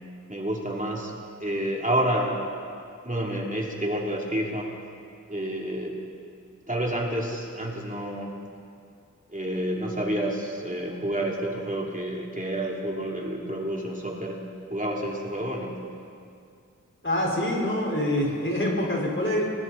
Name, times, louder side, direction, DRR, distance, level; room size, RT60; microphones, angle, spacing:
voice 1, 0.3-1.1 1.4-2.4 3.0-4.7 5.3-6.0 6.7-8.4 9.3-14.4 14.7-15.8, right 1 dB, 25° right, -2 dB, 3.5 m, -29 dB
voice 2, 17.0-19.5, left 1 dB, 40° left, -3 dB, 5.2 m, -25 dB
29.0 x 21.5 x 4.3 m, 2.3 s
wide cardioid pair, 65°, 32 cm